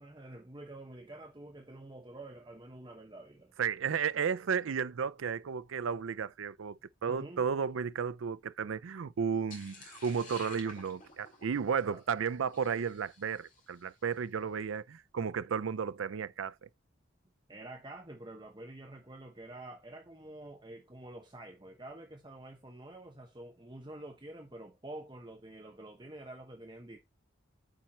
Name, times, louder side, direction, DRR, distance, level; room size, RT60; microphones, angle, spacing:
voice 1, 0.0-3.5 7.0-7.4 11.8-12.0 17.5-27.0, right 1 dB, 20° right, 0.9 m, -48 dB
voice 2, 3.6-16.7, right 6 dB, 85° right, 0.4 m, -33 dB
sound 1, 9.5-13.8, left 3 dB, 40° left, 2.3 m, -52 dB
8.9 x 4.4 x 4.2 m
head